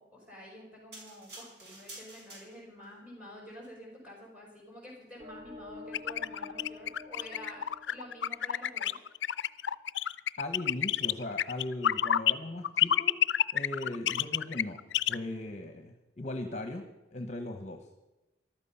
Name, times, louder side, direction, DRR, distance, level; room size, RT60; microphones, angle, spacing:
voice 1, 0.0-9.0, equal, 5° right, -2 dB, 6.0 m, -49 dB
sound 1, 0.9-2.9 3.5-3.7, right 2 dB, 60° right, 5.2 m, -49 dB
sound 2, 5.2-8.8, left 3 dB, 30° right, 1.1 m, -48 dB
sound 3, 5.9-12.3 12.6-15.2, left 10 dB, 75° left, 0.4 m, -28 dB
voice 2, 10.4-13.1 13.5-17.9, left 1 dB, 35° left, 6 dB, 1.0 m, -38 dB
14.5 x 12.5 x 5.6 m, 1.0 s
head